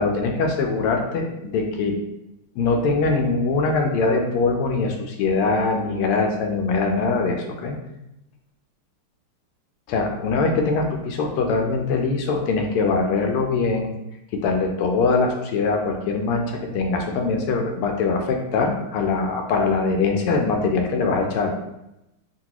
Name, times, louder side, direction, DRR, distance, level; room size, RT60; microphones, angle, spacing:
voice 1, 0.0-2.0 2.6-7.8 9.9-13.9 14.3-21.6, left 4 dB, 85° left, 3 dB, 1.5 m, -22 dB
3.8 x 2.2 x 2.9 m, 0.89 s
omnidirectional pair, 2.4 m